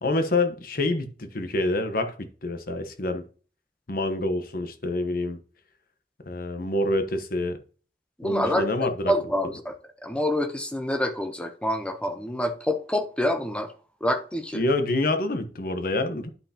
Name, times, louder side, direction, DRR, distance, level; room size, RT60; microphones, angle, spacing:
voice 1, 0.0-3.2 3.9-5.4 6.3-7.6 8.2-9.1 14.5-16.3, left 2 dB, 55° left, 1.0 m, -27 dB
voice 2, 8.2-9.7 10.0-13.7 14.0-14.6, left 1 dB, 5° left, 0.8 m, -27 dB
11.0 x 5.6 x 2.9 m
head